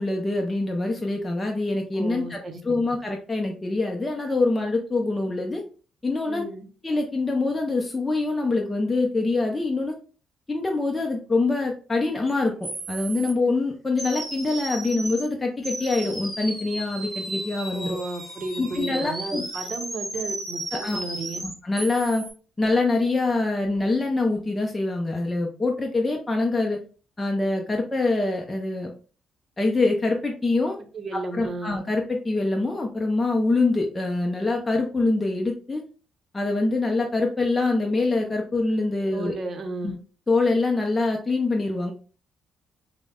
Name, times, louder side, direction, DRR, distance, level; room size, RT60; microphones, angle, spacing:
voice 1, 0.0-2.4 2.6-5.6 6.0-6.4 6.8-9.9 10.5-18.0 18.6-19.4 20.7-21.0 21.4-22.2 22.6-26.8 27.2-28.9 29.6-30.8 31.1-35.8 36.3-39.3 39.8-39.9 40.3-41.9, left 3 dB, 20° left, 1 dB, 0.5 m, -25 dB
voice 2, 1.9-2.6 6.3-6.6 17.7-21.4 30.9-31.8 39.1-40.0, right 3 dB, 45° right, 5 dB, 0.7 m, -33 dB
sound 1, 12.3-12.4 12.6-13.3 14.0-15.3 15.6-22.3, right 2 dB, 15° right, 1.2 m, -34 dB
4.8 x 2.1 x 2.3 m, 0.38 s
cardioid pair, 90°, 0 cm